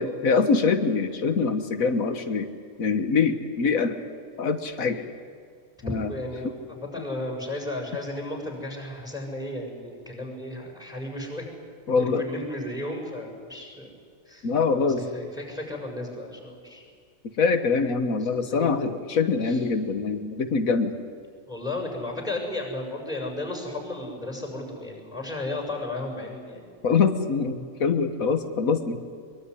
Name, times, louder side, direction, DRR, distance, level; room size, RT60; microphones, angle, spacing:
voice 1, 0.0-2.5 2.8-4.0 4.4-5.1 5.8-6.1 11.9-12.2 14.4-15.0 17.4-20.9 26.8-29.1, left 5 dB, 85° left, 8 dB, 1.8 m, -24 dB
voice 2, 5.9-11.5 11.9-13.9 14.3-16.8 18.2-18.7 19.4-19.6 21.5-26.9, left 2 dB, 5° right, 2 dB, 7.2 m, -34 dB
22.5 x 22.5 x 9.9 m, 2.2 s
omnidirectional pair, 1.4 m